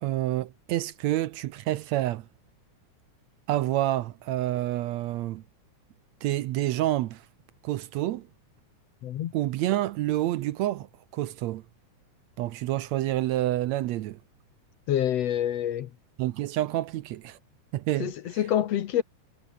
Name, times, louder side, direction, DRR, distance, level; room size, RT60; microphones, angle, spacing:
voice 1, 0.0-2.3 3.5-5.4 6.2-7.2 7.6-8.3 9.3-10.9 11.1-11.6 12.4-14.2 16.2-17.4 17.7-18.1, right 14 dB, 75° right, 1.8 m, -28 dB
voice 2, 9.0-9.3 14.9-15.9 18.0-19.0, left 11 dB, 65° left, 2.0 m, -27 dB
omnidirectional pair, 3.5 m